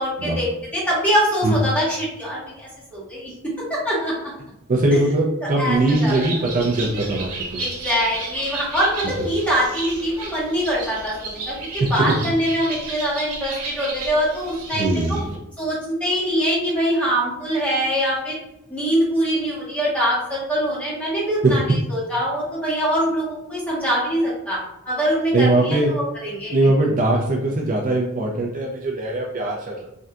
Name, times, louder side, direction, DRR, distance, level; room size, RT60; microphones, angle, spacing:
voice 1, 0.0-4.3 4.9-5.0 5.6-6.1 7.6-15.2 15.6-18.4 18.7-26.6, equal, 5° left, -7 dB, 1.2 m, -23 dB
voice 2, 4.7-7.6 11.8-12.1 14.7-15.3 21.4-21.6 25.3-25.9 26.5-29.9, right 2 dB, 40° right, -1 dB, 0.4 m, -20 dB
Bird, 5.7-15.4, right 3 dB, 90° right, 0.8 m, -33 dB
3.6 x 2.7 x 2.2 m, 0.85 s
head